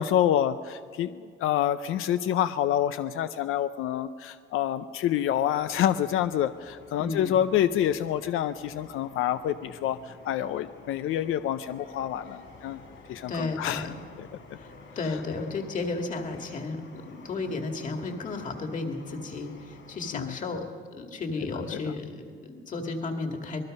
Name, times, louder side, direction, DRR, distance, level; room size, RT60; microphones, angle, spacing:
voice 1, 0.0-12.8 13.1-13.9 14.2-14.3 20.1-20.3, left 11 dB, 90° left, 11 dB, 0.6 m, -27 dB
sound 1, 5.3-20.2, left 3 dB, 70° left, 7.7 m, -51 dB
voice 2, 7.0-7.4 13.3-13.9 14.6-23.6, left 3 dB, 40° left, 4 dB, 2.1 m, -33 dB
25.5 x 20.5 x 5.4 m, 2.1 s
cardioid pair, 175°, 21 cm